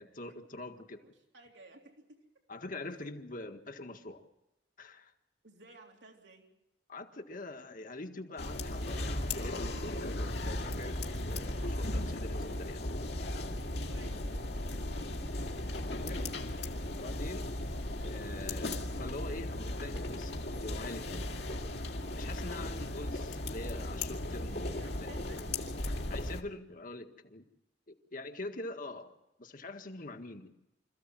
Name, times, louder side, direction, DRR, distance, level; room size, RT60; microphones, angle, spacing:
voice 1, 0.0-1.0 2.5-4.2 4.8-5.1 6.9-12.8 16.0-16.3 17.0-17.5 18.0-21.3 22.1-25.4 26.1-27.4 27.9-30.5, left 2 dB, 50° left, 6 dB, 1.7 m, -44 dB
voice 2, 0.9-2.2 2.9-3.1 5.4-6.5 13.7-15.5 24.7-25.4, right 2 dB, 85° right, 1 dB, 3.4 m, -57 dB
sound 1, 8.4-26.4, left 1 dB, 70° left, 2.2 m, -36 dB
26.5 x 15.0 x 7.7 m, 0.93 s
head